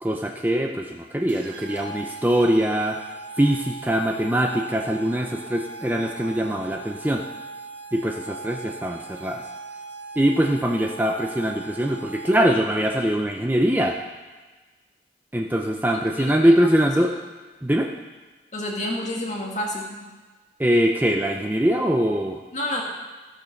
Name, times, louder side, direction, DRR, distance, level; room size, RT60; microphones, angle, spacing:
voice 1, 0.0-3.0 3.4-7.2 7.9-9.4 10.2-14.0 15.3-17.2 17.6-17.9 20.6-22.4, equal, 10° right, 2 dB, 0.5 m, -22 dB
sound 1, 1.3-12.7, right 3 dB, 80° right, 1.4 m, -39 dB
voice 2, 16.2-16.5 17.0-17.1 18.5-20.0 22.5-22.8, left 1 dB, 40° left, -1 dB, 2.1 m, -29 dB
15.0 x 7.0 x 5.8 m, 1.3 s
head